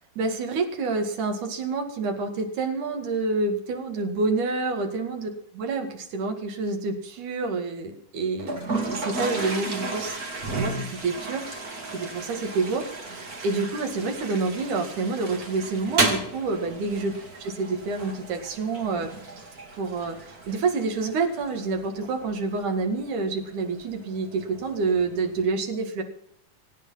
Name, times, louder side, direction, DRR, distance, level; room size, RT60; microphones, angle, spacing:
voice 1, 0.2-10.2 10.5-19.1 19.7-26.0, right 3 dB, 80° right, 5 dB, 3.6 m, -28 dB
Toilet flush, 8.4-25.4, right 3 dB, 30° right, 2.6 m, -34 dB
24.0 x 9.4 x 5.7 m, 0.72 s
omnidirectional pair, 3.5 m